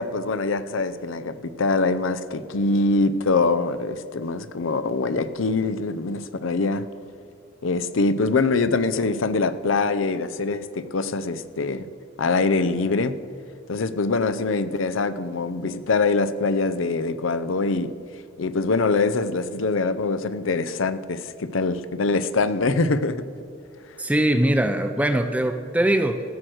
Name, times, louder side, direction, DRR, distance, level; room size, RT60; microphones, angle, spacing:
voice 1, 0.0-6.8 7.6-11.9 12.2-13.1 13.7-17.9 18.4-23.2, left 3 dB, 90° left, 12 dB, 0.6 m, -24 dB
voice 2, 24.0-26.2, right 1 dB, 5° right, 7 dB, 0.5 m, -21 dB
14.0 x 6.4 x 7.8 m, 2.3 s
head